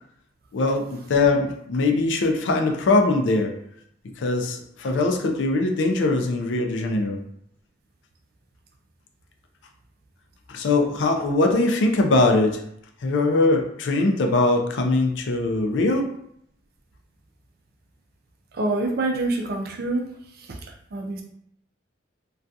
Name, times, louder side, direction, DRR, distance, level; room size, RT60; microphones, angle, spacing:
voice 1, 0.5-3.5 4.2-7.2 10.5-12.6 13.0-16.1, left 2 dB, 75° left, 4 dB, 0.4 m, -21 dB
voice 2, 18.5-20.0 20.4-20.6 20.9-21.2, right 2 dB, 55° right, 2 dB, 0.4 m, -26 dB
2.3 x 2.3 x 2.6 m, 0.72 s
head